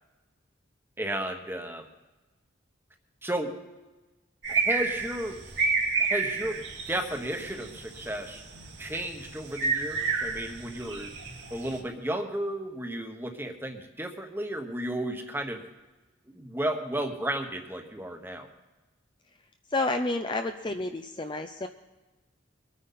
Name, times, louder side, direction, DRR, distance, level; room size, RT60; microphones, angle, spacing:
voice 1, 1.0-1.8 3.2-3.6 4.5-5.4 6.0-8.4 8.8-11.1 11.5-15.6 16.3-18.5, right 1 dB, 10° right, 4 dB, 1.2 m, -33 dB
sound 1, 4.4-11.8, right 4 dB, 65° right, 2.1 m, -31 dB
voice 2, 19.7-21.7, left 2 dB, 25° left, 6 dB, 0.5 m, -30 dB
23.0 x 9.4 x 4.1 m, 1.1 s
head